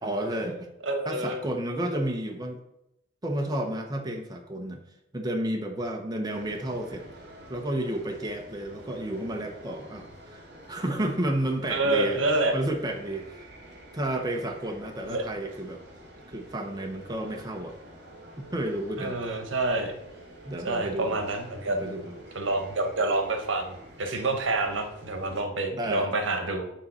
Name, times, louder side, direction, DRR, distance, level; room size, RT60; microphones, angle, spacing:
voice 1, 0.0-0.7 1.1-2.6 3.2-4.8 5.1-7.0 7.5-12.2 12.5-13.5 13.9-15.8 16.3-17.8 18.4-19.2 20.5-21.2 21.7-22.1 25.7-26.1, right 1 dB, 20° right, 2 dB, 0.8 m, -31 dB
voice 2, 0.8-1.4 11.7-12.6 15.1-15.3 19.0-19.9 20.6-21.9 22.3-26.7, right 2 dB, 80° right, 5 dB, 1.1 m, -27 dB
sound 1, 6.3-25.4, right 1 dB, 60° right, 2.0 m, -49 dB
7.5 x 4.0 x 5.5 m, 0.84 s
head